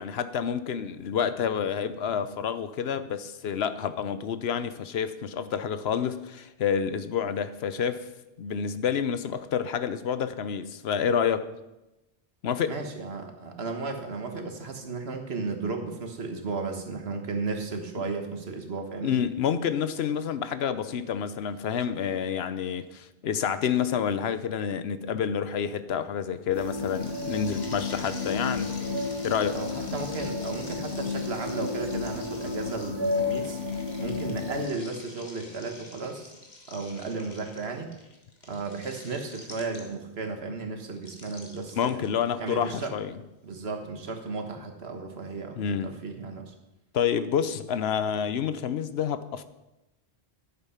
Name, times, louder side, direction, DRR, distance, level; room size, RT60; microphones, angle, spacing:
voice 1, 0.0-8.1 8.4-11.5 12.4-12.8 19.0-28.7 29.2-29.6 41.8-43.1 45.5-45.9 46.9-49.5, left 7 dB, 75° left, 0.9 m, -28 dB
voice 2, 12.7-19.2 29.5-33.6 34.0-36.4 36.7-37.9 38.4-42.0 42.4-42.9 43.4-46.5, right 3 dB, 75° right, 1.6 m, -34 dB
sound 1, 26.5-34.6, left 3 dB, 20° right, 2.5 m, -32 dB
sound 2, 26.6-40.2 41.0-42.9, left 2 dB, 45° left, 1.8 m, -47 dB
10.5 x 8.5 x 5.7 m
omnidirectional pair, 1.1 m